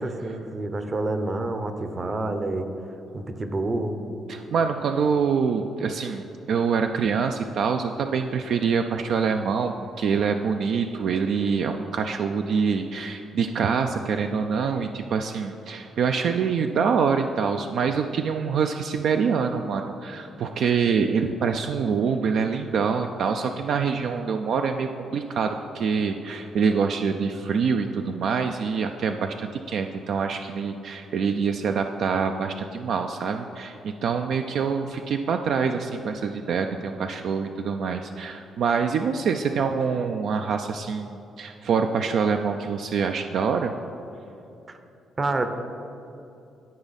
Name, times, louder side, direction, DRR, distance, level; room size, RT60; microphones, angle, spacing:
voice 1, 0.0-2.7 3.1-4.0 44.7-44.8 45.2-45.5, right 2 dB, 35° right, 7 dB, 0.7 m, -28 dB
voice 2, 4.3-43.7, right 6 dB, 70° right, 5 dB, 0.3 m, -25 dB
12.5 x 4.9 x 4.1 m, 2.8 s
cardioid pair, 90°, 0 cm